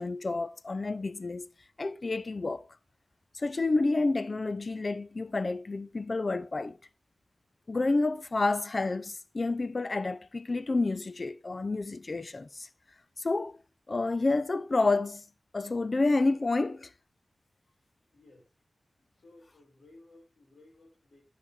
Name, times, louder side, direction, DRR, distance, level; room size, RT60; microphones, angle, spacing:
voice 1, 0.0-1.5 1.8-2.7 3.3-6.8 7.7-12.7 13.2-13.6 13.9-15.2 15.5-16.9, left 3 dB, 45° left, 0.6 m, -29 dB
voice 2, 17.6-18.5 19.1-21.2, left 2 dB, 65° left, 5.6 m, -58 dB
10.5 x 7.2 x 4.3 m
cardioid pair, 65°, 0 cm